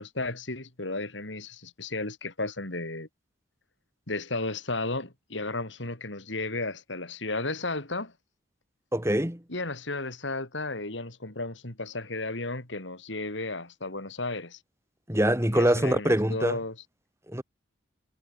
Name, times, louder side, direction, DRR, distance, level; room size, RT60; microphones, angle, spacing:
voice 1, 0.0-3.1 4.1-8.1 9.5-14.6 15.5-16.8, left 2 dB, 75° left, 4.0 m, -34 dB
voice 2, 8.9-9.4 15.1-16.6 17.3-17.4, right 1 dB, 15° right, 2.8 m, -24 dB
head